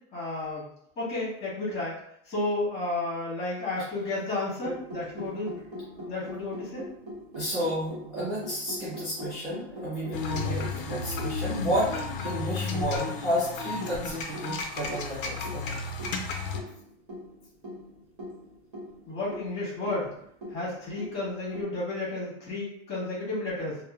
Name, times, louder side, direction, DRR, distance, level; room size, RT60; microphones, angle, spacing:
voice 1, 0.1-0.6 1.0-2.0 2.3-5.6 6.1-6.9 10.3-10.5 19.1-20.1 20.5-23.8, left 2 dB, 15° left, -8 dB, 1.5 m, -32 dB
sound 1, 4.6-21.6, equal, 45° right, 1.2 m, -42 dB
voice 2, 7.3-11.9 12.2-15.7, equal, ahead, -15 dB, 0.6 m, -31 dB
sound 2, 10.1-16.6, left 4 dB, 45° left, 0.4 m, -33 dB
3.1 x 2.1 x 2.3 m, 0.71 s
supercardioid pair, 170°, 38 cm